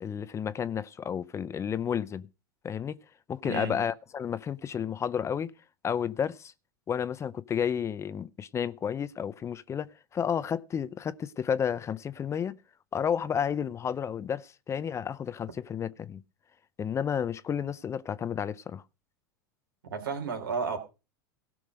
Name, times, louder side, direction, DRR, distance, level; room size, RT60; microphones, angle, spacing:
voice 1, 0.0-2.3 2.6-3.0 3.3-5.5 5.8-6.5 6.9-12.6 12.9-16.2 16.8-18.8, left 8 dB, 25° left, 0.6 m, -31 dB
voice 2, 3.4-3.8 19.8-20.8, right 5 dB, 80° right, 3.3 m, -32 dB
17.0 x 6.2 x 5.1 m
hypercardioid pair, 95°, 12 cm